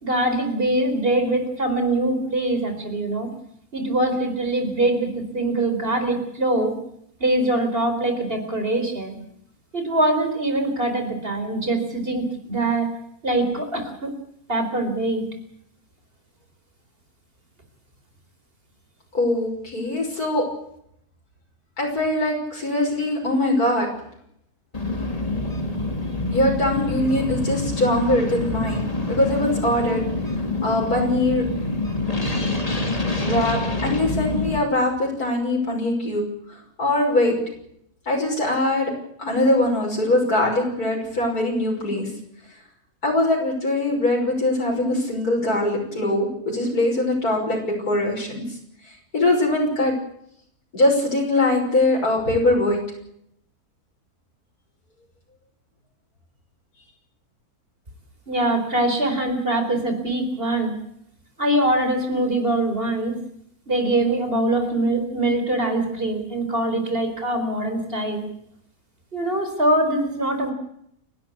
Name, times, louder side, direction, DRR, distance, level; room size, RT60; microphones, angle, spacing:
voice 1, 0.0-3.3 3.7-6.8 7.2-9.2 9.7-12.9 13.2-14.1 14.5-15.3 58.3-60.7 61.4-63.2 63.7-68.3 69.1-70.5, right 1 dB, 40° right, 7 dB, 4.7 m, -23 dB
voice 2, 19.1-20.4 21.8-23.9 26.3-30.0 30.6-31.4 33.2-36.2 36.8-37.4 38.1-38.9 39.2-42.1 43.0-47.6 47.9-48.6 49.1-49.9 50.7-52.8, left 1 dB, 90° left, -1 dB, 6.5 m, -22 dB
sound 1, 24.7-34.6, left 2 dB, 25° left, 2.8 m, -26 dB
30.0 x 12.0 x 8.4 m, 0.72 s
omnidirectional pair, 1.6 m